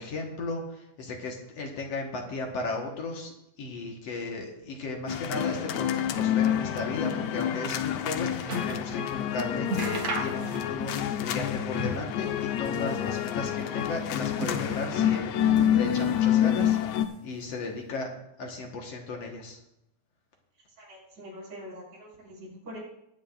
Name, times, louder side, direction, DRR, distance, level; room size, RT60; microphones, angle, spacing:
voice 1, 0.0-3.3 3.6-16.8 17.2-18.1 18.4-19.6, left 3 dB, 60° left, 1 dB, 2.3 m, -35 dB
sound 1, 5.1-17.1, left 10 dB, 80° left, 1.9 m, -28 dB
sound 2, 8.0-8.9 9.3-9.4 9.6-10.9 11.2-12.2 12.5-13.4 14.0-15.0 15.5-16.2 16.5-17.3 18.0-18.1, right 2 dB, 50° right, 2.4 m, -36 dB
voice 2, 20.8-22.8, equal, 70° right, -5 dB, 6.2 m, -44 dB
20.0 x 9.2 x 2.5 m, 0.81 s
omnidirectional pair, 3.4 m